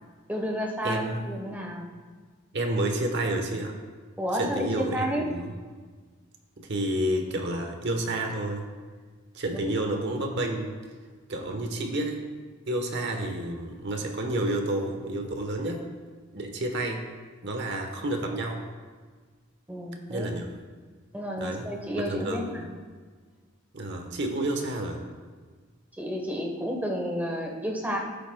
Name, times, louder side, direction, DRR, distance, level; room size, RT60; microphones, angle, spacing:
voice 1, 0.3-1.9 4.2-5.3 19.7-20.3 21.1-22.7 26.0-28.0, equal, 10° right, 0 dB, 1.0 m, -31 dB
voice 2, 0.8-1.3 2.5-3.8 4.3-5.5 6.6-8.7 9.3-10.7 11.3-12.3 12.7-15.9 16.3-17.1 17.4-18.7 20.1-20.5 21.4-21.7 21.9-22.6 23.7-25.0, right 1 dB, 55° right, 3 dB, 1.1 m, -30 dB
15.0 x 8.1 x 2.2 m, 1.5 s
head